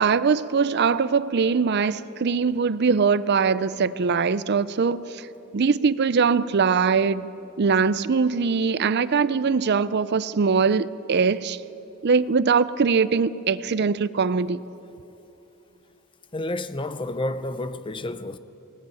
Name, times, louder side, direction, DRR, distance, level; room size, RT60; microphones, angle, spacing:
voice 1, 0.0-5.3 5.5-7.3 7.6-11.6 12.0-14.6, right 5 dB, 50° right, 0.5 m, -22 dB
voice 2, 16.3-18.4, left 1 dB, 25° left, 0.6 m, -30 dB
19.0 x 18.0 x 9.1 m
head